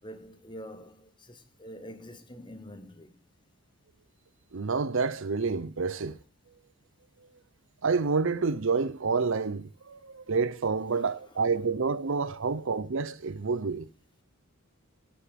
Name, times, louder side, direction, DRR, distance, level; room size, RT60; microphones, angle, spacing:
voice 1, 0.0-3.2 5.9-6.1 10.9-11.4 12.4-12.6, equal, 20° left, 1.2 m, -47 dB
voice 2, 4.5-6.2 7.8-13.9, right 4 dB, 60° right, 0.7 m, -28 dB
11.5 x 7.3 x 7.6 m
head